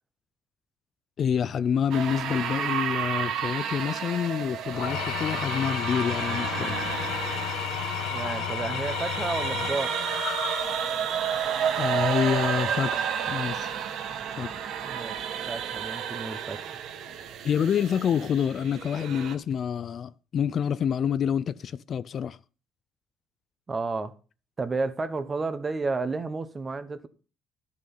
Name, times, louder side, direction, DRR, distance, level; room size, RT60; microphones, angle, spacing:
voice 1, 1.2-6.8 11.8-13.7 14.4-14.6 17.4-22.4, left 8 dB, 40° left, 0.4 m, -27 dB
sound 1, 1.9-19.4, right 8 dB, 65° right, 1.4 m, -31 dB
Engine / Tools, 4.7-11.1, left 14 dB, 75° left, 0.7 m, -33 dB
voice 2, 8.1-10.0 14.8-15.2 15.5-16.6 23.7-24.1 24.6-27.1, right 3 dB, 20° right, 1.1 m, -31 dB
sound 2, 10.5-15.9, right 4 dB, 35° right, 2.4 m, -49 dB
12.5 x 6.3 x 5.5 m
cardioid pair, 150°, 0 cm